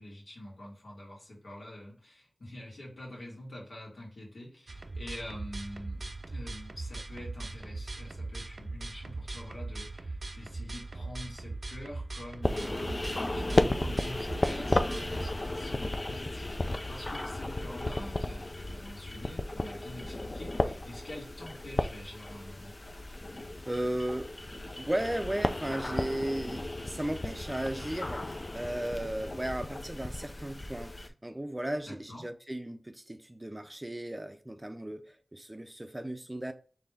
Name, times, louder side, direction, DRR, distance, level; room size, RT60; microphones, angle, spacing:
voice 1, 0.0-13.0 13.3-22.7 31.9-32.2, left 1 dB, 80° left, 2.1 m, -46 dB
sound 1, 4.7-15.3, right 2 dB, 65° right, 0.5 m, -40 dB
sound 2, 12.4-31.1, left 2 dB, 45° left, 0.4 m, -34 dB
voice 2, 23.7-36.5, right 1 dB, 20° right, 0.5 m, -35 dB
4.2 x 3.3 x 3.4 m
wide cardioid pair, 55°, 0 cm